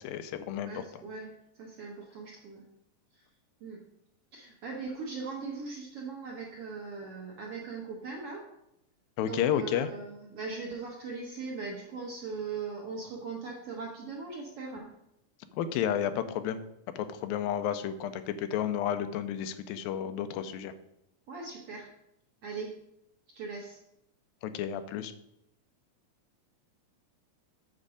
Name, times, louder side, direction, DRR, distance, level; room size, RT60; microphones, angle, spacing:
voice 1, 0.0-0.8 9.2-9.9 15.5-16.6 17.0-20.7 24.4-25.1, left 9 dB, 90° left, 10 dB, 2.4 m, -31 dB
voice 2, 0.6-2.6 3.6-3.8 4.3-8.4 9.2-14.9 21.3-21.9 22.4-22.8 23.3-23.8, right 4 dB, 60° right, -1 dB, 1.7 m, -40 dB
7.5 x 6.5 x 4.9 m, 0.79 s
omnidirectional pair, 4.0 m